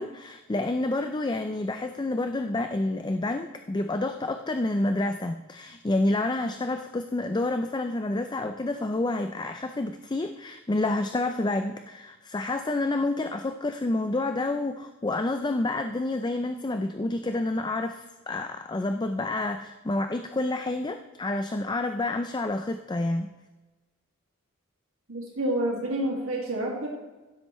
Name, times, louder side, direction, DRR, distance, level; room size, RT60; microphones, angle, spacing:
voice 1, 0.0-23.3, left 2 dB, 20° left, 7 dB, 0.4 m, -29 dB
voice 2, 25.1-26.9, right 1 dB, 70° right, -2 dB, 2.1 m, -28 dB
15.5 x 8.0 x 3.1 m, 1.2 s
head